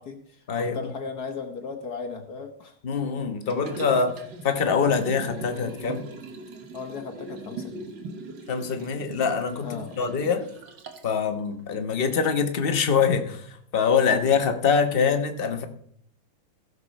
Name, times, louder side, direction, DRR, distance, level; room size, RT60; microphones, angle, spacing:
voice 1, 0.0-2.7 4.0-4.1 6.7-7.9 9.6-10.0 14.0-14.2, left 5 dB, 55° left, 1.4 m, -37 dB
voice 2, 2.8-4.2 4.4-6.0 8.5-10.5 11.0-15.6, left 6 dB, 35° left, 1.0 m, -24 dB
Liquid, 3.5-11.2 11.6-11.7, right 3 dB, 60° right, 1.8 m, -40 dB
15.5 x 6.9 x 5.3 m
omnidirectional pair, 2.4 m